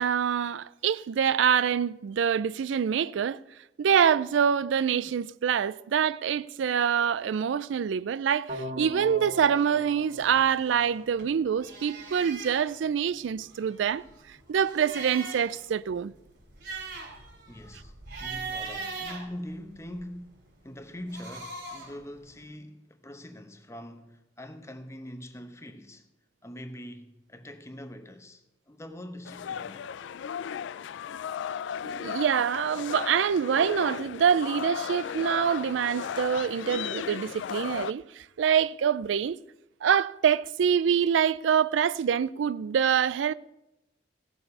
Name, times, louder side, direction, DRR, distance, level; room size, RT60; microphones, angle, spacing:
voice 1, 0.0-3.4 3.8-16.1 31.9-39.4 39.8-43.3, right 8 dB, 90° right, 0.4 m, -25 dB
sound 1, 8.5-11.5, equal, 45° right, 1.7 m, -40 dB
sound 2, 10.2-11.3 11.6-12.7 13.4-15.6 16.0-16.1 16.4-20.0 20.9-22.0, right 4 dB, 60° right, 3.6 m, -40 dB
voice 2, 17.5-17.9 18.2-26.1 26.4-29.9, equal, 15° left, 0.9 m, -43 dB
sound 3, 29.2-37.9, left 8 dB, 75° left, 0.3 m, -35 dB
17.0 x 7.0 x 5.4 m
head